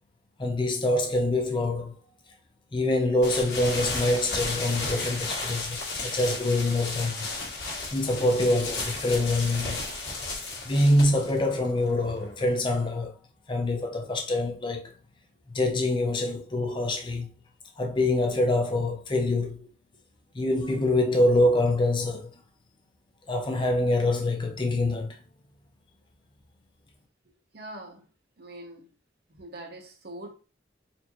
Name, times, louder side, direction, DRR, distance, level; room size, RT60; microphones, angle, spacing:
voice 1, 0.4-1.9 2.7-7.3 7.9-9.9 10.6-13.1 13.5-14.9 15.5-17.3 17.8-19.6 20.3-22.3 23.3-25.2, left 1 dB, 25° left, 0.6 m, -25 dB
sound 1, 3.2-12.8, left 3 dB, 60° left, 1.5 m, -34 dB
voice 2, 27.5-28.1 28.4-28.9 29.3-30.4, right 1 dB, 60° right, 0.9 m, -43 dB
4.2 x 2.7 x 2.9 m
head